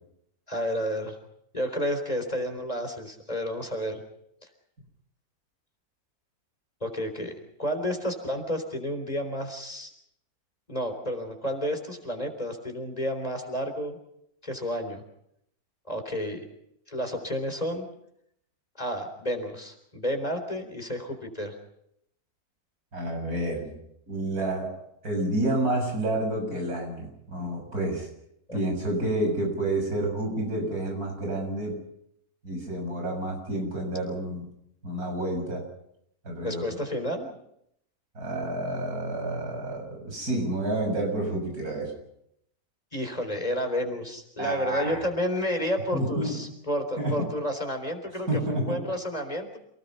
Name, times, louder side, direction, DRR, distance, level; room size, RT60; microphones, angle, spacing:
voice 1, 0.5-1.2 1.5-4.0 6.8-7.3 7.6-9.9 10.7-14.0 14.4-15.0 15.9-16.4 16.9-17.9 18.8-21.6 28.5-28.6 36.4-37.3 42.9-49.6, equal, 25° left, 6 dB, 4.0 m, -31 dB
voice 2, 22.9-23.7 24.1-24.8 25.0-28.1 28.5-31.8 32.4-34.5 34.8-35.7 36.2-36.8 38.1-41.9 44.4-45.0 45.9-46.4 47.0-47.3 48.3-48.9, right 1 dB, 90° right, 2 dB, 7.7 m, -29 dB
29.0 x 18.5 x 5.6 m, 0.73 s
omnidirectional pair, 1.5 m